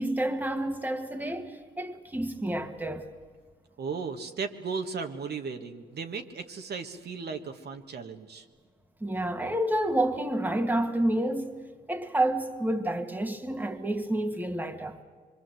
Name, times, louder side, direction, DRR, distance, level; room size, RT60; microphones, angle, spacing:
voice 1, 0.0-3.1 9.0-11.6 11.9-15.0, right 1 dB, 10° right, 1.8 m, -29 dB
voice 2, 3.8-8.4, right 5 dB, 55° right, 1.7 m, -36 dB
25.0 x 23.5 x 7.8 m
cardioid pair, 90°, 20 cm